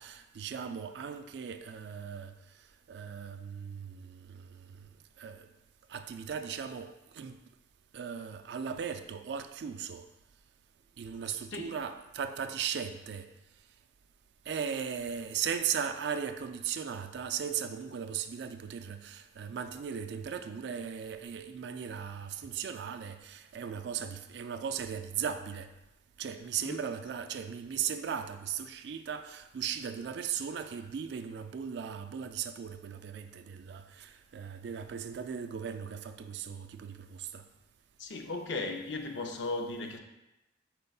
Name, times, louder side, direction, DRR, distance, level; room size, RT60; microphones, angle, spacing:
voice 1, 0.0-2.3 2.9-4.9 5.2-5.5 5.9-7.4 7.9-10.0 11.0-13.3 14.5-25.7 26.2-37.4, right 7 dB, 65° right, 0.3 m, -37 dB
voice 2, 11.3-11.7 26.7-26.8 38.0-40.0, left 3 dB, 70° left, 0.5 m, -36 dB
5.2 x 4.4 x 2.3 m
head